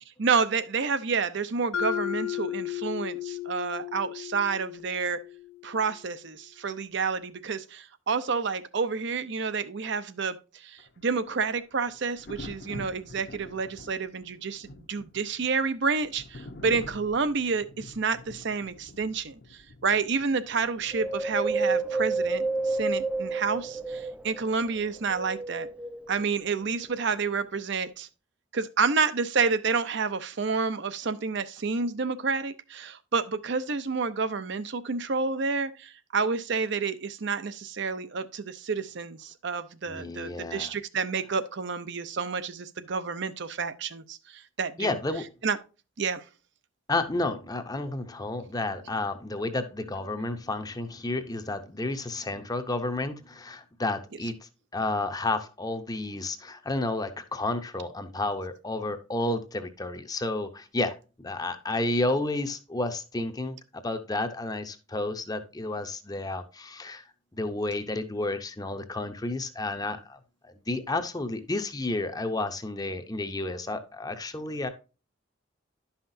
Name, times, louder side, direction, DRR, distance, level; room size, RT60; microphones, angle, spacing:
voice 1, 0.2-5.2 5.6-10.4 10.6-19.4 19.8-25.7 26.1-28.1 28.5-45.0 45.4-45.6 46.0-46.2, right 5 dB, 60° right, 0.6 m, -29 dB
Mallet percussion, 1.7-5.8, left 12 dB, 80° left, 0.6 m, -34 dB
Thunder, 10.8-24.4 26.1-26.3, left 2 dB, 55° left, 0.9 m, -48 dB
Wind, 20.9-24.5 25.0-26.3 26.8-26.9, right 3 dB, 5° right, 0.3 m, -29 dB
voice 2, 39.9-40.7 44.8-45.2 46.9-60.9 61.2-63.6 63.8-67.1 67.3-74.7, left 2 dB, 20° left, 0.7 m, -31 dB
11.0 x 5.7 x 2.6 m
head